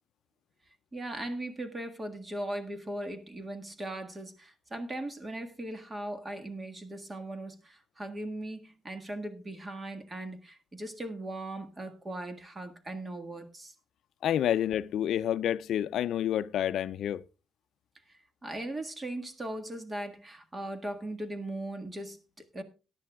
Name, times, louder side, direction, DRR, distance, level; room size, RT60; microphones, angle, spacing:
voice 1, 0.9-13.7 18.4-22.6, right 1 dB, 25° right, 1.7 m, -39 dB
voice 2, 14.2-17.2, left 10 dB, 75° left, 0.4 m, -29 dB
17.5 x 10.5 x 2.3 m
cardioid pair, 90°, 0 cm